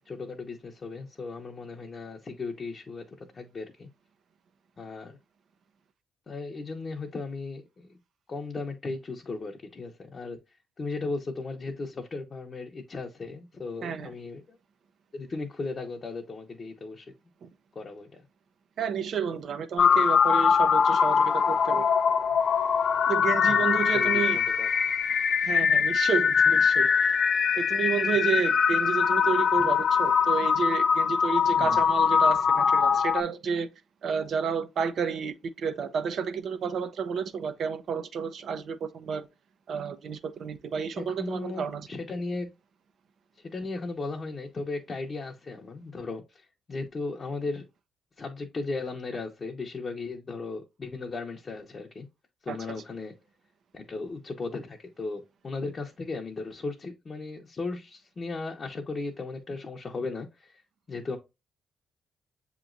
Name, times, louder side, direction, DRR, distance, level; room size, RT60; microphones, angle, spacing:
voice 1, 0.1-3.9 4.8-5.2 6.3-7.9 8.3-10.4 10.8-14.6 15.1-17.1 17.7-18.2 23.5-24.7 25.4-25.5 29.6-29.7 31.6-31.8 41.0-42.5 43.4-47.7 48.2-52.1 52.4-53.1 53.7-60.6 60.9-61.2, left 3 dB, 35° left, 0.7 m, -36 dB
voice 2, 13.8-14.1 17.4-17.5 18.8-21.9 23.1-24.4 25.4-27.2 27.6-33.7 34.0-39.3 39.7-41.9 52.5-52.8, right 6 dB, 60° right, 0.5 m, -31 dB
sound 1, 19.8-33.2, left 6 dB, 55° left, 0.3 m, -23 dB
6.9 x 3.0 x 2.5 m
cardioid pair, 90°, 0 cm